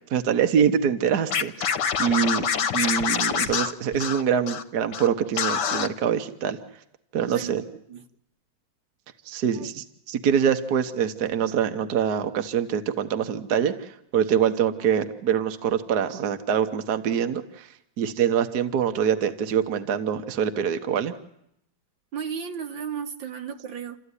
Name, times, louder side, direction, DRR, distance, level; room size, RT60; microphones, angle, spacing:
voice 1, 0.1-2.4 2.7-6.6 7.1-7.6 9.3-17.7 18.0-21.1, right 8 dB, 60° right, 1.5 m, -24 dB
Scratching (performance technique), 1.3-4.6 4.9-5.1 5.4-5.9, left 7 dB, 65° left, 1.7 m, -25 dB
voice 2, 7.3-8.0 9.5-9.7 22.1-24.0, right 7 dB, 75° right, 2.2 m, -35 dB
29.0 x 14.0 x 9.8 m
omnidirectional pair, 2.1 m